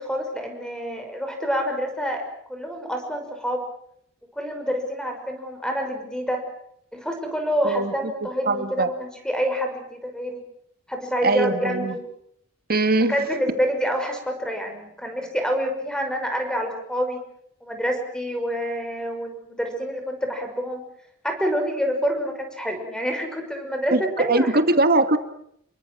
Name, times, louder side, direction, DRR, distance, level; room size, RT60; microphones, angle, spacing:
voice 1, 0.0-2.2 2.5-3.6 4.4-6.4 6.9-10.4 10.9-12.0 13.1-17.2 17.6-20.8 21.2-24.5, equal, 5° left, 5 dB, 6.1 m, -27 dB
voice 2, 8.5-8.9 11.2-11.9 12.7-13.2 23.9-25.2, right 2 dB, 45° right, 9 dB, 2.2 m, -21 dB
29.0 x 23.5 x 6.3 m, 0.70 s
head